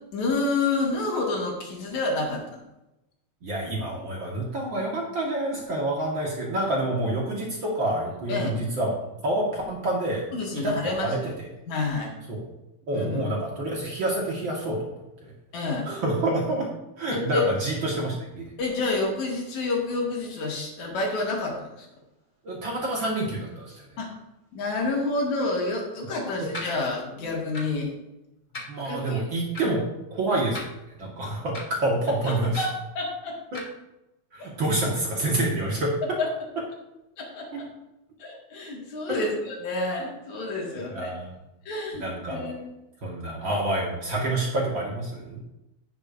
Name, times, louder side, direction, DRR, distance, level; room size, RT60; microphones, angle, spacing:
voice 1, 0.1-2.6 8.3-8.5 10.3-11.3 11.7-12.1 12.9-13.2 15.5-15.9 17.1-17.5 18.6-21.9 24.0-24.1 24.5-27.9 28.8-29.2 29.6-29.7 32.2-33.4 34.4-34.5 36.2-36.3 37.2-37.7 38.2-41.1 41.7-42.7, left 3 dB, 75° left, -1 dB, 3.2 m, -29 dB
voice 2, 3.4-10.3 10.6-11.2 12.3-12.5 12.9-14.9 15.2-15.3 15.9-16.7 17.0-18.5 22.4-23.9 26.2-26.5 28.7-29.8 30.1-30.6 31.0-32.6 33.5-33.6 34.3-35.9 37.5-37.6 39.1-39.2 40.7-41.3 42.0-42.5 43.0-45.4, right 1 dB, 50° right, -2 dB, 1.9 m, -28 dB
sound 1, 26.5-26.7 27.5-27.8 28.5-28.7 29.5-29.6 30.5-31.0 31.5-31.7 32.5-32.8 33.5-33.6, left 2 dB, 40° left, 0.6 m, -37 dB
16.0 x 6.6 x 2.6 m, 0.94 s
omnidirectional pair, 3.4 m